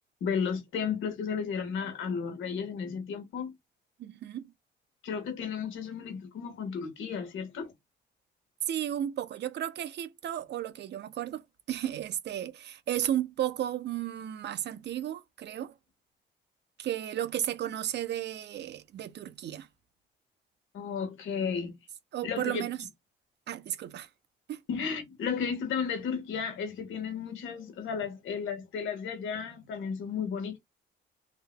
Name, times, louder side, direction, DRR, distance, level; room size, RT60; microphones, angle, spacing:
voice 1, 0.2-3.5 5.0-7.7 20.7-21.8 22.2-22.6 24.7-30.6, left 6 dB, 80° left, 1.5 m, -33 dB
voice 2, 4.0-4.5 8.7-15.8 16.8-19.7 22.1-22.8 23.5-24.1 24.5-24.6, right 11 dB, 60° right, 0.6 m, -34 dB
3.3 x 2.8 x 2.2 m
cardioid pair, 90°, 20 cm